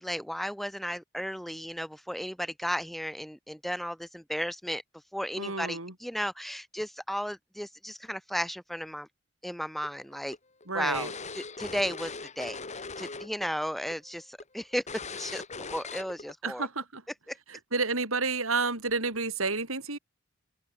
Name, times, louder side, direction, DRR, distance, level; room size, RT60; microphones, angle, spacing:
voice 1, 0.0-4.8 5.1-9.1 9.4-10.4 10.7-14.8 15.1-15.4 15.7-16.7 17.3-17.4, equal, ahead, 3.4 m, -34 dB
voice 2, 5.4-5.9 10.7-11.1 16.4-17.0 17.5-20.0, right 4 dB, 90° right, 7.2 m, -30 dB
sound 1, 9.8-13.5 13.7-13.9 14.4-14.5 14.9-16.3, left 4 dB, 35° left, 2.9 m, -40 dB
head